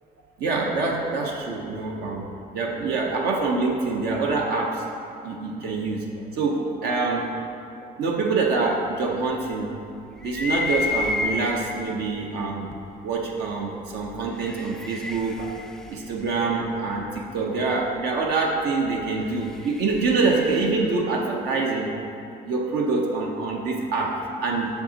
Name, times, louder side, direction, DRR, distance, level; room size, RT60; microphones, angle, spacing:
voice 1, 0.4-2.2 2.5-4.8 5.2-7.2 8.0-9.7 10.2-12.7 13.0-15.5 15.9-22.0 22.4-24.7, right 3 dB, 75° right, -1 dB, 0.8 m, -25 dB
sound 1, 10.2-11.9 12.7-12.8 14.1-17.0 19.1-20.8, left 3 dB, 5° left, 0.3 m, -31 dB
7.0 x 6.8 x 2.8 m, 2.5 s
cardioid pair, 110°, 17 cm